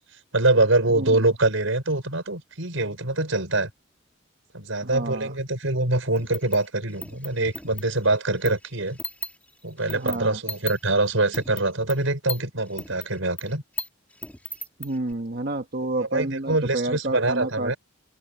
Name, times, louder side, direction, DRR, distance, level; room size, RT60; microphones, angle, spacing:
voice 1, 0.3-3.7 4.5-9.0 9.6-13.6 16.1-17.8, right 2 dB, 80° right, 5.5 m, -24 dB
voice 2, 0.9-1.2 4.8-5.3 9.9-10.4 14.8-17.7, right 2 dB, 50° right, 1.4 m, -29 dB
sound 1, 6.2-9.4 9.8-12.4 12.7-15.1, left 3 dB, 10° left, 2.8 m, -36 dB
open air
head